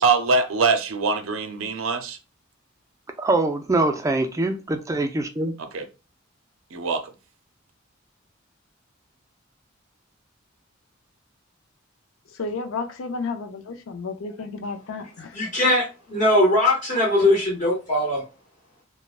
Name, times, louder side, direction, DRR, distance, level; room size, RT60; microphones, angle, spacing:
voice 1, 0.0-2.2 5.6-5.9 6.7-7.0, right 4 dB, 85° right, 0.6 m, -23 dB
voice 2, 3.2-5.5, right 2 dB, 15° right, 0.3 m, -23 dB
voice 3, 12.4-15.3, left 4 dB, 80° left, 0.5 m, -32 dB
voice 4, 15.3-18.2, left 1 dB, 40° left, 0.9 m, -20 dB
3.2 x 2.1 x 2.4 m
head